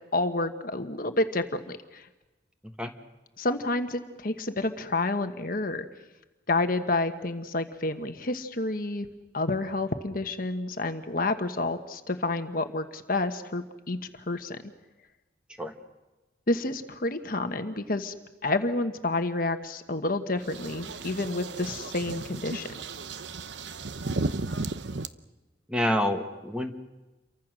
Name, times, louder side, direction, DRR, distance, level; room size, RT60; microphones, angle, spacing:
voice 1, 0.1-2.1 3.4-5.9 6.5-9.1 9.3-14.6 16.5-18.1 18.4-22.7, left 2 dB, 50° left, 8 dB, 1.3 m, -29 dB
voice 2, 2.6-2.9 15.6-15.7 25.7-26.8, left 1 dB, 5° right, 5 dB, 1.5 m, -28 dB
sound 1, 20.4-25.1, right 3 dB, 75° right, 0.9 m, -34 dB
29.5 x 24.0 x 6.4 m, 1.1 s
head